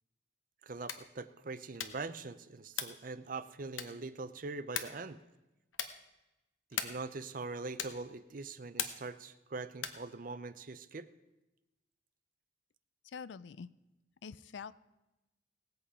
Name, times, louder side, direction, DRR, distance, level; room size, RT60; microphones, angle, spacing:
voice 1, 0.6-5.2 6.7-11.1, right 3 dB, 45° right, 13 dB, 0.5 m, -43 dB
sound 1, 0.8-1.2 1.7-2.1 2.7-3.1 3.7-4.1 4.7-5.1 5.7-6.1 6.7-7.1 7.7-8.1 8.8-9.2 9.7-10.1, left 8 dB, 85° left, 1.0 m, -40 dB
voice 2, 13.0-13.7 14.2-14.7, left 6 dB, 65° left, 18 dB, 0.4 m, -45 dB
18.5 x 8.0 x 4.9 m, 1.0 s
head